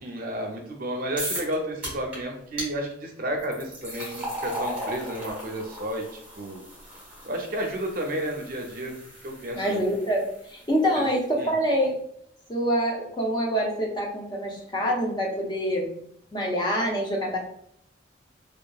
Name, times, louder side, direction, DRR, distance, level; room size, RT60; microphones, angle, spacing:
voice 1, 0.0-6.6 7.2-9.0 9.2-9.6 11.0-11.1 11.4-11.5, right 1 dB, 50° right, 2 dB, 0.5 m, -32 dB
sound 1, 1.2-1.5 1.8-2.2 2.6-2.7 3.4-10.5, equal, 10° right, 1.0 m, -37 dB
voice 2, 9.6-12.0 12.5-15.9 16.3-17.4, equal, 25° left, -2 dB, 0.5 m, -26 dB
2.8 x 2.3 x 2.3 m, 0.69 s
head